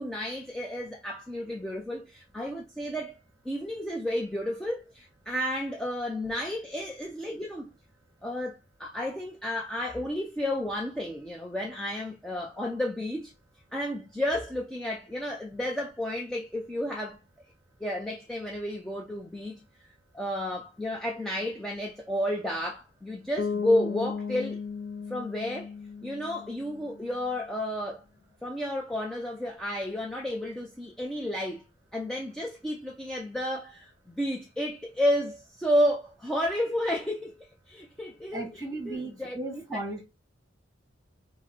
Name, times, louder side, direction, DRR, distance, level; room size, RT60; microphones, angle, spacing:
voice 1, 0.0-3.2 3.4-7.7 8.2-13.3 13.7-17.2 17.8-19.6 20.1-24.6 25.1-25.7 26.0-28.0 28.4-31.6 31.9-39.4 39.7-40.0, left 1 dB, 5° left, 0.4 m, -31 dB
Bass guitar, 23.4-27.2, left 5 dB, 65° left, 0.5 m, -35 dB
voice 2, 38.3-40.0, right 2 dB, 20° right, 1.3 m, -35 dB
4.7 x 2.0 x 4.4 m
head